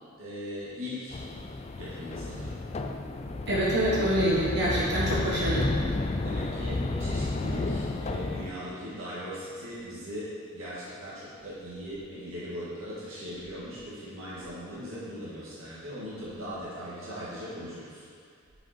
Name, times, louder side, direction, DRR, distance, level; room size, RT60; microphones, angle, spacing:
voice 1, 0.2-1.2 1.8-2.5 6.2-18.0, equal, 70° right, -10 dB, 2.0 m, -39 dB
sound 1, 1.1-8.5, left 2 dB, 30° left, 0.3 m, -32 dB
voice 2, 3.5-5.7, right 1 dB, 50° right, -7 dB, 1.4 m, -26 dB
7.7 x 5.3 x 4.5 m, 2.1 s
head